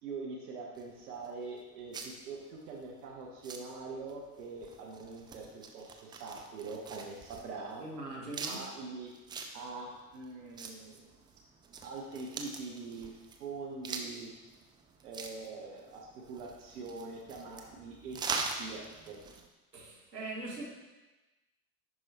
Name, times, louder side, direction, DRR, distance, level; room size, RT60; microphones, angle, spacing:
voice 1, 0.0-7.8 8.5-9.1 9.5-11.1 11.8-14.3 15.0-18.2 18.6-19.2, right 4 dB, 70° right, -1 dB, 1.3 m, -43 dB
sound 1, 0.7-19.5, right 4 dB, 10° right, 0.3 m, -44 dB
voice 2, 7.8-8.6 19.7-20.7, right 2 dB, 85° right, -3 dB, 1.5 m, -41 dB
11.0 x 4.8 x 3.0 m, 1.1 s
figure-of-eight pair, 75°, 48 cm